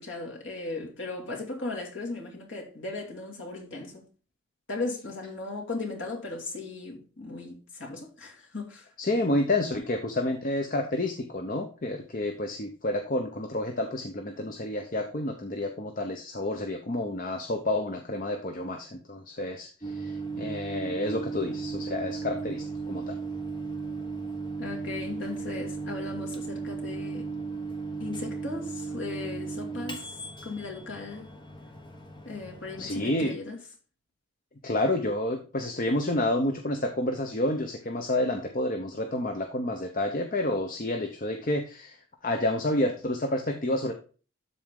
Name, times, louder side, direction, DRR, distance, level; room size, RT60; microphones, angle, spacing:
voice 1, 0.0-4.0 4.7-8.8 24.6-27.3 28.0-30.1 30.4-31.3 32.2-33.6, left 3 dB, 60° left, 2.3 m, -37 dB
voice 2, 9.0-23.2 32.8-33.4 34.6-43.9, left 1 dB, 40° left, 0.7 m, -29 dB
Microwave oven, 19.8-33.3, right 4 dB, 20° left, 1.1 m, -36 dB
12.5 x 4.2 x 3.7 m
head